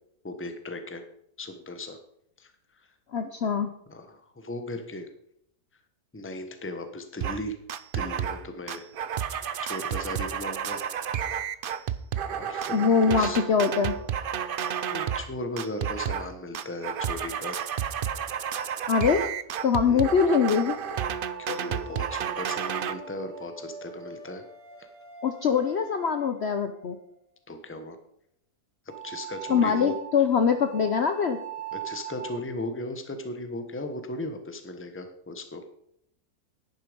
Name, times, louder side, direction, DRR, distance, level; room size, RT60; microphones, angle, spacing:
voice 1, 0.2-1.0 1.4-2.0 2.4-2.5 3.9-5.1 6.1-7.5 7.9-8.9 9.3-10.8 12.3-13.5 14.9-17.6 19.9-20.0 21.4-24.4 24.8-24.9 27.5-28.0 29.0-29.9 31.7-35.6, left 1 dB, 10° left, 7 dB, 1.1 m, -37 dB
voice 2, 3.1-3.7 12.7-14.0 18.9-19.3 19.6-20.8 21.5-21.6 25.2-27.0 29.5-31.4, left 6 dB, 50° left, 7 dB, 0.9 m, -23 dB
sound 1, 7.2-7.4 7.7-8.4 8.7-15.3 15.6-16.3 16.5-22.9, right 8 dB, 70° right, 0.5 m, -31 dB
sound 2, 21.2-27.0 28.9-32.4, right 9 dB, 90° right, 2.4 m, -41 dB
11.0 x 9.8 x 5.2 m, 0.73 s
omnidirectional pair, 1.7 m